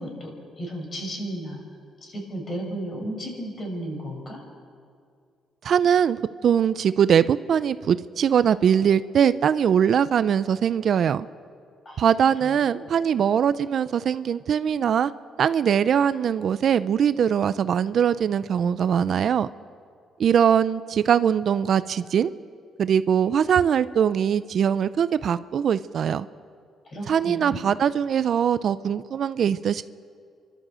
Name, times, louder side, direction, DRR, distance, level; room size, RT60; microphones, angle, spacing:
voice 1, 0.0-1.6 2.0-4.4 11.8-12.1 12.4-12.9 26.8-27.8, right 1 dB, 40° left, 1 dB, 6.2 m, -34 dB
voice 2, 5.6-11.3 12.0-15.1 15.4-19.5 20.2-22.3 22.8-26.3 27.1-29.8, right 8 dB, 60° right, 15 dB, 0.5 m, -21 dB
29.0 x 12.5 x 7.6 m, 2.3 s
cardioid pair, 90°, 0 cm